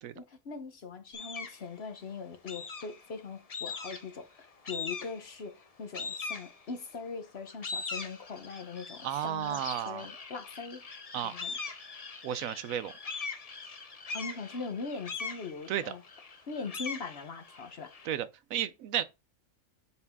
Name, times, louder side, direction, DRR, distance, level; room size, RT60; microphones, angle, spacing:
voice 1, 0.1-10.8 11.2-11.5 14.1-16.0 16.5-17.9, left 4 dB, 50° left, 1.1 m, -41 dB
sound 1, 1.1-1.6 2.5-3.1 3.5-4.2 4.6-5.3 5.9-6.9 7.4-18.1, left 4 dB, 35° left, 0.7 m, -41 dB
voice 2, 9.0-10.1 11.1-11.3 12.2-12.9 15.7-15.9 18.1-19.0, right 10 dB, 80° right, 1.0 m, -33 dB
7.1 x 4.6 x 3.5 m
omnidirectional pair, 1.4 m